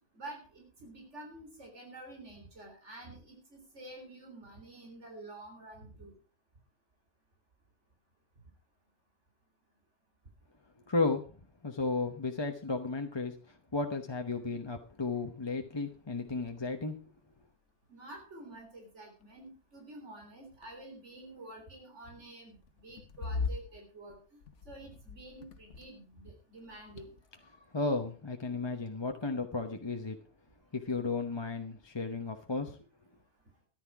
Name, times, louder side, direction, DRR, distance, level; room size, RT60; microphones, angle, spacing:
voice 1, 0.1-6.1 17.9-27.1, right 2 dB, 80° right, 2 dB, 4.0 m, -49 dB
voice 2, 10.9-11.2 11.6-17.0 27.7-30.2 30.7-32.7, left 3 dB, 25° left, 5 dB, 0.9 m, -34 dB
sound 1, 14.9-15.0 15.5-15.7 16.0-17.7 18.5-18.9 19.2-19.5 20.3-21.2 22.6-26.2 26.5-27.5, left 4 dB, 85° left, 1.3 m, -42 dB
14.0 x 11.0 x 4.7 m, 0.36 s
omnidirectional pair, 1.2 m